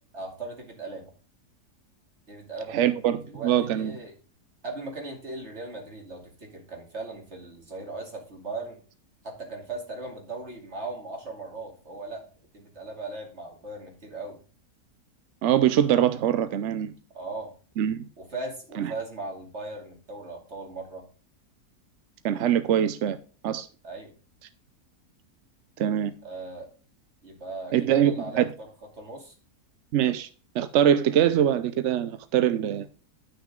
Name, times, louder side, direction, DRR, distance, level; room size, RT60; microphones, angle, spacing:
voice 1, 0.1-1.1 2.3-4.1 4.6-8.8 9.2-12.2 12.5-14.4 17.1-17.5 18.2-21.0 23.8-24.1 26.2-26.7 27.2-28.7 28.9-29.3, right 3 dB, 45° right, 2.9 m, -38 dB
voice 2, 2.7-3.9 15.4-16.9 17.8-18.1 18.8-18.9 22.2-23.2 23.4-23.7 25.8-26.1 27.7-28.5 29.9-30.3 30.5-32.9, right 10 dB, 65° right, 0.7 m, -23 dB
11.0 x 6.2 x 3.7 m
omnidirectional pair, 1.7 m